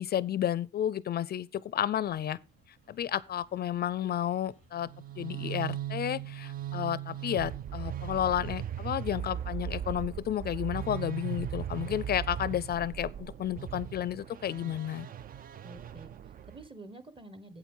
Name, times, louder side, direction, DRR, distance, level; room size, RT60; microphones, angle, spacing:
voice 1, 0.0-2.4 2.9-4.9 5.2-15.1, left 11 dB, 50° left, 0.4 m, -32 dB
sound 1, 2.0-13.4, right 2 dB, 80° right, 4.0 m, -65 dB
sound 2, 4.8-16.7, right 10 dB, 45° right, 0.4 m, -38 dB
voice 2, 15.6-17.6, right 2 dB, 25° right, 1.3 m, -49 dB
8.0 x 7.3 x 5.4 m
cardioid pair, 90°, 20 cm